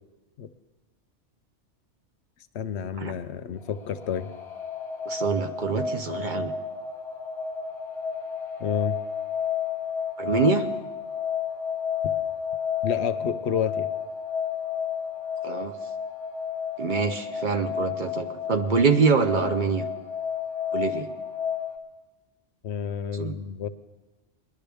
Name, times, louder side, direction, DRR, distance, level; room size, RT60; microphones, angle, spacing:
voice 1, 2.5-4.3 8.6-9.0 12.8-13.9 22.6-23.7, left 8 dB, 70° left, 12 dB, 0.8 m, -29 dB
sound 1, 3.6-21.8, left 7 dB, 25° left, 0.9 m, -31 dB
voice 2, 5.1-6.5 10.2-10.7 15.4-15.7 16.8-19.8 20.7-21.1 23.1-23.3, right 5 dB, 50° right, 7 dB, 0.7 m, -25 dB
20.0 x 11.5 x 3.4 m, 1.2 s
omnidirectional pair, 1.2 m